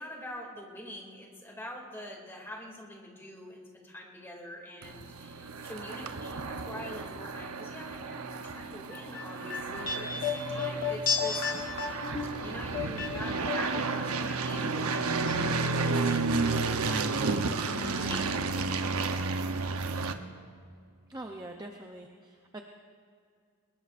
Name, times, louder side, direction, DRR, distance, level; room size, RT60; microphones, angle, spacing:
voice 1, 0.0-11.8 12.4-18.4, left 1 dB, 10° left, -2 dB, 2.6 m, -44 dB
sound 1, 4.8-20.1, right 3 dB, 80° right, 0.9 m, -32 dB
sound 2, 8.9-14.1 14.4-15.4 15.6-15.7, left 6 dB, 40° left, 1.4 m, -33 dB
voice 2, 21.1-22.6, right 1 dB, 15° right, 2 dB, 0.6 m, -43 dB
23.0 x 21.5 x 2.6 m, 2.3 s
head